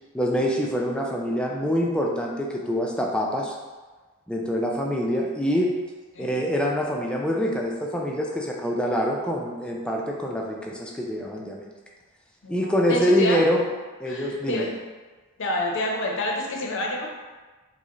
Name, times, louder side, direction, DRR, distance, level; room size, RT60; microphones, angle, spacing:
voice 1, 0.1-3.5 4.3-5.7 6.2-11.7 12.5-13.6 14.0-14.7, equal, 5° left, -1 dB, 0.3 m, -25 dB
voice 2, 12.4-13.4 14.1-14.7 15.4-17.1, left 1 dB, 60° left, 0 dB, 0.6 m, -28 dB
4.8 x 2.0 x 2.9 m, 1.3 s
head